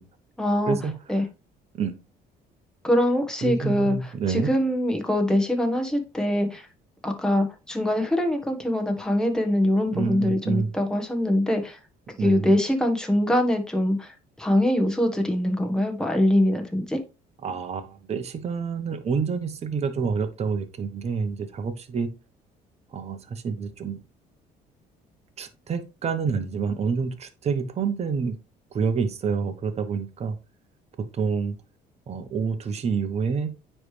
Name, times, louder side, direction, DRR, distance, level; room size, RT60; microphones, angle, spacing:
voice 1, 0.4-0.8 1.1-1.2 2.8-6.7 7.0-11.8 12.2-17.0, left 1 dB, 5° left, 3 dB, 1.3 m, -23 dB
voice 2, 3.4-4.5 9.9-10.7 12.2-12.5 17.4-22.1 22.9-24.0 25.4-28.4 28.7-30.4 31.0-31.5 32.1-33.5, right 5 dB, 40° right, 7 dB, 1.0 m, -28 dB
9.5 x 3.3 x 3.3 m, 0.28 s
cardioid pair, 110°, 17 cm